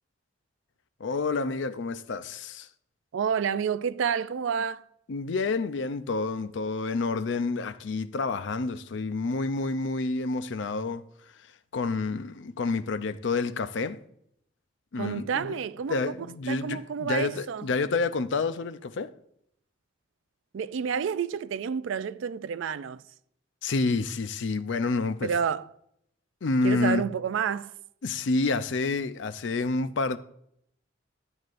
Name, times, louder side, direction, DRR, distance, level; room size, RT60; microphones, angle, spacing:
voice 1, 1.0-2.7 5.1-11.0 11.7-14.0 14.9-15.6 15.9-19.1 23.6-25.3 26.4-27.0 28.0-30.2, left 3 dB, 70° left, 0.5 m, -29 dB
voice 2, 3.1-4.8 15.0-16.1 16.5-17.7 20.5-23.0 25.2-25.7 26.6-27.7, right 7 dB, 80° right, 0.4 m, -29 dB
12.5 x 7.9 x 2.5 m
head